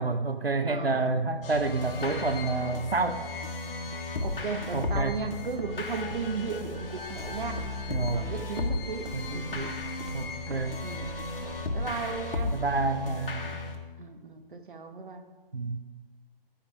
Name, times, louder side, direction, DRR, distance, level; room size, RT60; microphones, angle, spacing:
voice 1, 0.0-3.2 4.7-5.2 7.9-8.3 9.1-9.8 10.1-10.8 12.5-13.5 15.5-15.8, right 3 dB, 90° right, 10 dB, 0.9 m, -29 dB
voice 2, 0.6-1.0 4.2-7.6 8.1-9.1 9.3-9.8 10.8-11.1 11.7-12.6 14.0-15.2, right 5 dB, 60° right, 7 dB, 1.2 m, -35 dB
sound 1, 1.4-13.8, left 2 dB, 70° left, 1.5 m, -35 dB
sound 2, 2.0-6.4 6.8-11.7, left 7 dB, 25° left, 0.5 m, -47 dB
Walk footsteps, 5.0-12.9, right 4 dB, 40° right, 0.9 m, -46 dB
14.0 x 5.9 x 4.8 m, 1.3 s
figure-of-eight pair, 135°, 29 cm